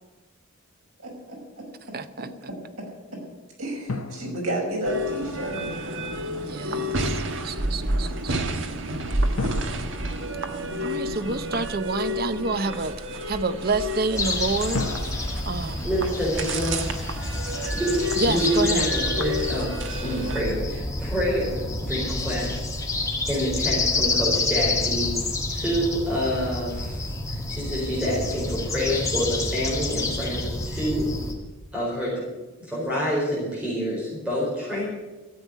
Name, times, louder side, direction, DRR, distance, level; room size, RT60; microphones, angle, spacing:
voice 1, 1.0-1.7 2.2-2.9 3.1-3.2 3.6-5.6, right 1 dB, 80° right, 5.9 m, -32 dB
voice 2, 1.9-2.3 6.4-8.3 10.8-13.0 13.3-14.9 15.5-15.9 18.2-18.9, right 3 dB, 45° right, 0.7 m, -28 dB
sound 1, 3.9-5.5 9.4-11.3 14.7-17.0, left 3 dB, 90° left, 1.1 m, -36 dB
sound 2, 4.8-20.4, equal, 60° right, 1.2 m, -30 dB
voice 3, 12.3-12.6 15.6-17.4 17.7-19.7 20.0-22.8 23.2-31.1 31.7-32.2 32.6-34.9, equal, 5° right, 4.4 m, -27 dB
sound 3, 14.2-31.3, left 2 dB, 15° left, 1.8 m, -28 dB
13.5 x 7.9 x 9.3 m
head